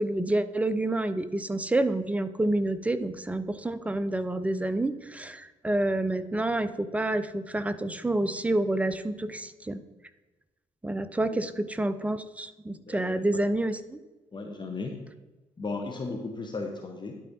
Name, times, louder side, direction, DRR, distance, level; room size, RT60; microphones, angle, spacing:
voice 1, 0.0-9.8 10.8-14.0, right 1 dB, 10° right, 12 dB, 0.5 m, -28 dB
voice 2, 12.8-13.4 14.3-15.0 15.6-17.2, left 3 dB, 25° left, 3 dB, 0.9 m, -36 dB
11.5 x 4.2 x 2.7 m, 1.1 s
figure-of-eight pair, 45°, 17 cm